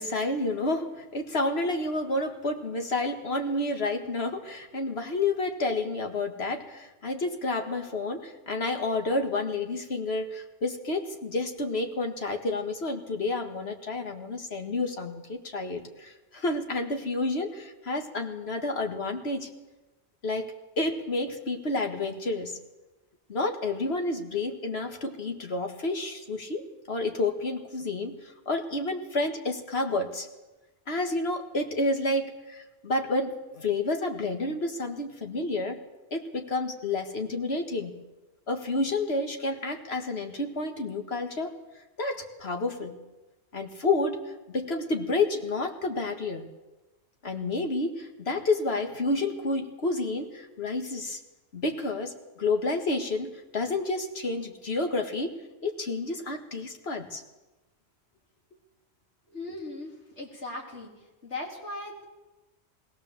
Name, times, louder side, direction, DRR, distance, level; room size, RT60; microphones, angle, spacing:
voice 1, 0.0-19.5 20.2-22.5 23.3-30.3 30.9-35.8 36.1-37.9 38.5-41.5 42.0-43.0 43.5-44.2 44.5-46.4 47.2-51.2 51.5-55.3 55.6-57.2, left 2 dB, 65° left, 5 dB, 2.1 m, -30 dB
voice 2, 59.3-60.9 61.2-62.0, left 2 dB, 85° left, -1 dB, 4.0 m, -38 dB
20.5 x 17.5 x 7.4 m, 1.1 s
omnidirectional pair, 1.1 m